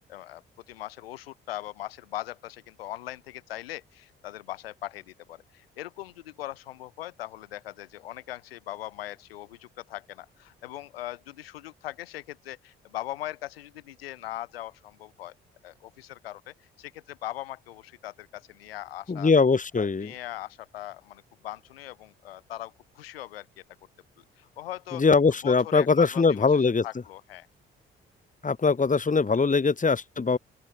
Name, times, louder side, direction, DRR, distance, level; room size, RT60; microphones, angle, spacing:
voice 1, 0.0-15.4 15.6-19.3 19.8-23.6 24.2-25.0 25.4-27.5, left 14 dB, 80° left, 3.7 m, -40 dB
voice 2, 19.1-20.1 24.9-26.8 28.4-30.4, left 4 dB, 25° left, 2.2 m, -22 dB
open air
figure-of-eight pair, 40°, 29 cm